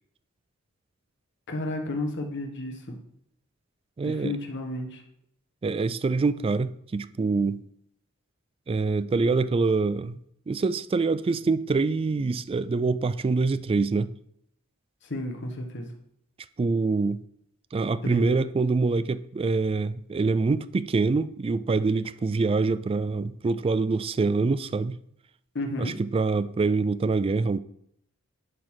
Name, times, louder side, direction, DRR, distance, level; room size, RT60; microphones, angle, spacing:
voice 1, 1.5-3.0 4.0-5.0 15.0-15.9 18.0-18.4 25.5-25.9, left 1 dB, 60° left, 1.4 m, -32 dB
voice 2, 4.0-4.3 5.6-7.6 8.7-10.2 10.5-14.1 16.6-17.2 17.7-25.0 25.8-27.6, right 3 dB, 25° right, 0.3 m, -25 dB
11.0 x 4.0 x 4.8 m
head